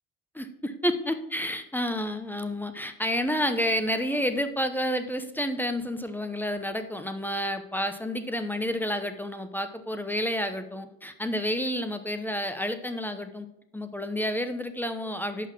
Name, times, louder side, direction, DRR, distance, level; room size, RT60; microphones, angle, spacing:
voice 1, 0.3-13.5 13.7-15.5, equal, 5° left, 8 dB, 0.7 m, -30 dB
5.6 x 5.5 x 5.9 m, 0.86 s
hypercardioid pair, 65°, 38 cm